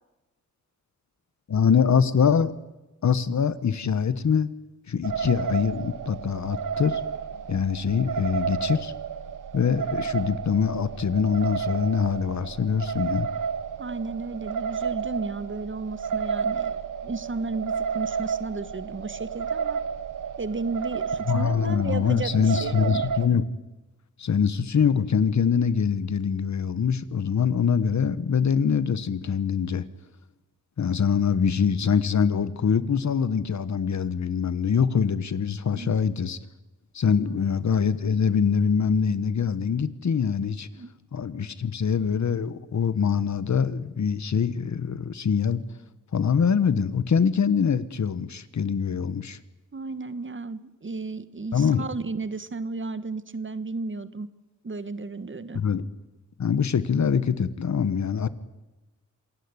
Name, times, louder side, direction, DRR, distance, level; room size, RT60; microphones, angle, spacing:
voice 1, 1.5-2.5 3.0-4.5 4.9-7.0 7.5-8.9 9.5-13.3 21.3-23.4 24.2-29.8 30.8-36.4 36.9-40.7 41.1-45.6 46.1-49.4 51.5-51.8 55.5-55.8 56.4-58.3, left 6 dB, 65° left, 15 dB, 1.3 m, -24 dB
sound 1, 5.0-23.3, right 7 dB, 85° right, 1.2 m, -31 dB
voice 2, 13.8-19.8 20.4-22.9 35.7-36.0 37.2-37.4 40.7-40.9 49.7-54.3 54.6-55.6, right 3 dB, 40° right, 14 dB, 1.4 m, -33 dB
27.0 x 16.5 x 9.8 m, 1.1 s
cardioid pair, 75°, 31 cm